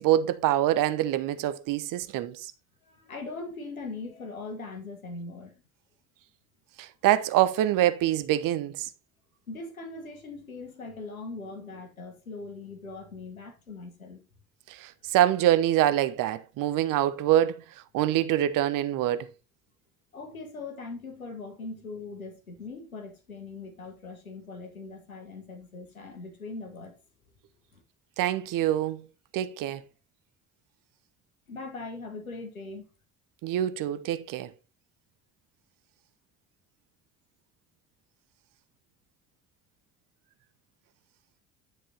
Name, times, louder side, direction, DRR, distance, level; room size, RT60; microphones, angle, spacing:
voice 1, 0.0-2.5 6.8-8.9 14.7-17.6 17.9-19.3 28.2-29.0 29.3-29.8 33.4-34.5, right 13 dB, 50° right, 1.0 m, -25 dB
voice 2, 2.8-5.6 9.5-14.2 20.1-26.9 27.7-27.8 31.5-32.9, left 3 dB, 85° left, 1.9 m, -40 dB
10.0 x 5.3 x 4.1 m
figure-of-eight pair, 55°, 41 cm